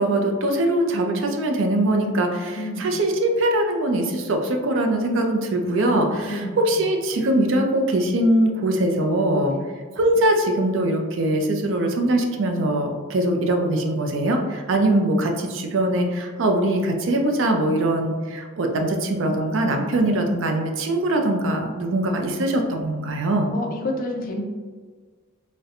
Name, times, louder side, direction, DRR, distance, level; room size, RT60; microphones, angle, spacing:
voice 1, 0.0-9.5 9.9-23.5, right 1 dB, 60° right, 3 dB, 0.4 m, -22 dB
voice 2, 2.6-3.0 6.2-6.6 9.5-9.7 20.0-20.2 23.5-24.4, left 1 dB, 40° left, 2 dB, 0.4 m, -30 dB
4.1 x 2.1 x 2.5 m, 1.5 s
head